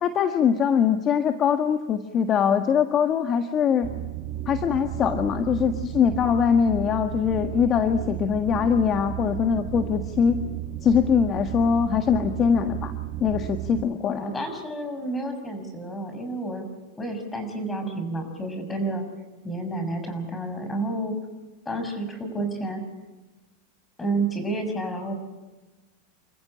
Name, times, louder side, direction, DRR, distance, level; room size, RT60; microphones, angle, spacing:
voice 1, 0.0-3.9 4.4-10.4 10.8-12.9 13.2-14.4, left 7 dB, 35° left, 7 dB, 1.7 m, -22 dB
sound 1, 3.8-13.9, right 13 dB, 45° right, 1.8 m, -33 dB
voice 2, 14.2-16.6 17.0-19.1 19.4-21.2 21.6-22.8 24.0-25.1, right 2 dB, 15° left, 7 dB, 6.5 m, -30 dB
28.5 x 15.0 x 9.0 m, 1.2 s
hypercardioid pair, 115°, 0 cm